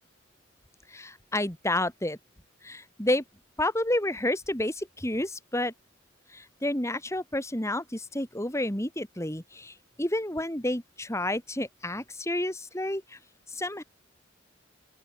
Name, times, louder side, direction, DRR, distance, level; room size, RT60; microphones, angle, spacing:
voice 1, 0.9-2.2 2.6-3.2 3.6-5.7 6.3-13.2 13.5-13.8, left 1 dB, 15° left, 4.4 m, -30 dB
open air
head